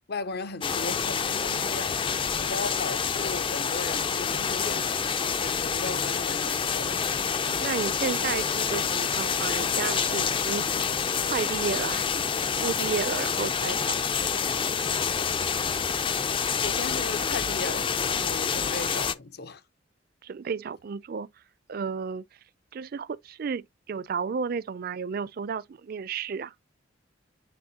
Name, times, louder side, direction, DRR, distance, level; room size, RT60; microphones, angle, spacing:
voice 1, 0.0-7.0 16.6-19.6, left 4 dB, 55° left, 0.7 m, -37 dB
sound 1, 0.6-19.1, left 6 dB, 25° left, 0.4 m, -27 dB
voice 2, 7.6-10.9 11.2-14.0 20.2-21.3 21.7-22.2 22.7-26.5, right 5 dB, 50° right, 0.4 m, -32 dB
9.5 x 4.1 x 2.8 m
head